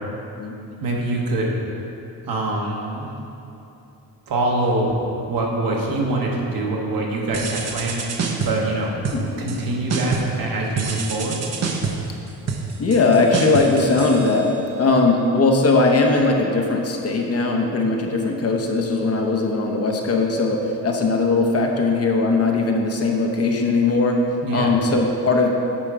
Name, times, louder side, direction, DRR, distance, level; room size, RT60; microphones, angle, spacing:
voice 1, 0.8-1.5 2.3-3.1 4.3-5.0 5.3-8.9 9.4-11.5 24.4-24.7, right 2 dB, 65° right, -2 dB, 1.4 m, -24 dB
sound 1, 7.3-8.7 9.0-9.6 9.9-10.4 10.8-14.8, right 5 dB, 45° right, 0.8 m, -27 dB
voice 2, 9.0-9.6 12.8-14.5 14.8-24.2 24.5-25.5, left 3 dB, 40° left, 1 dB, 0.8 m, -19 dB
9.2 x 5.1 x 4.8 m, 2.9 s
cardioid pair, 140°, 38 cm